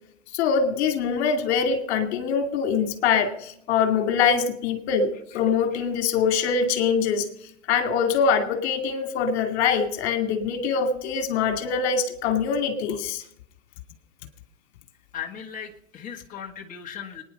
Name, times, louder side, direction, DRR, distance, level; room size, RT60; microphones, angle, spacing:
voice 1, 0.3-7.3 7.7-13.2, left 6 dB, 50° left, 8 dB, 2.5 m, -23 dB
voice 2, 15.1-17.2, left 8 dB, 20° left, 0 dB, 2.0 m, -37 dB
23.0 x 10.0 x 5.5 m, 0.74 s
hypercardioid pair, 110°, 40 cm